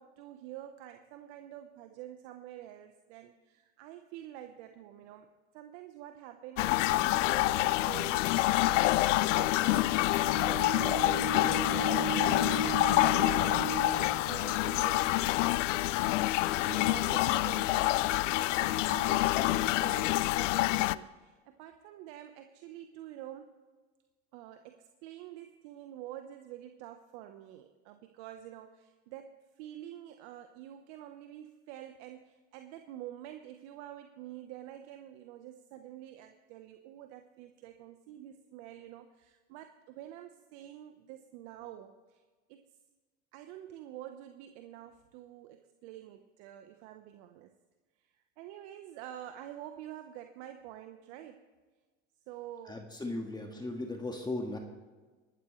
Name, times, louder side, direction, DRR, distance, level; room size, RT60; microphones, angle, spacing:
voice 1, 0.0-8.4 8.7-10.3 10.7-16.1 16.6-23.5 24.3-42.2 42.5-42.6 43.3-47.5 48.0-51.5 52.3-52.8, right 12 dB, 65° right, 7 dB, 1.1 m, -48 dB
sound 1, 6.6-21.0, left 17 dB, 80° left, 0.5 m, -27 dB
Bowed string instrument, 10.2-14.3, right 9 dB, 45° right, 2.3 m, -37 dB
voice 2, 52.7-54.6, left 2 dB, 10° left, 2 dB, 1.8 m, -37 dB
24.0 x 12.0 x 3.2 m, 1.3 s
hypercardioid pair, 90°, 37 cm